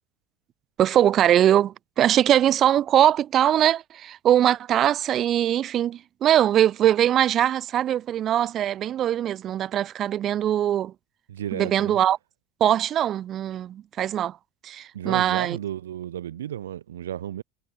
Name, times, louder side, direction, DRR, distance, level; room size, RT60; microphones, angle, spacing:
voice 1, 0.8-10.9 11.5-12.2 12.6-14.4 14.6-15.6, right 11 dB, 40° right, 1.7 m, -21 dB
voice 2, 11.3-12.0 14.9-17.4, right 11 dB, 70° right, 1.5 m, -33 dB
figure-of-eight pair, 70°, 0 cm